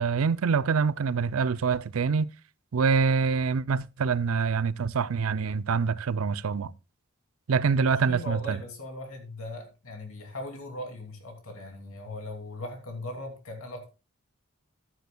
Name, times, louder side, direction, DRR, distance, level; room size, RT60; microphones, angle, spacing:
voice 1, 0.0-2.3 2.7-6.7 7.5-8.6, right 5 dB, 75° right, 0.5 m, -25 dB
voice 2, 7.8-13.9, left 1 dB, 75° left, 2.7 m, -39 dB
14.0 x 9.4 x 2.3 m
head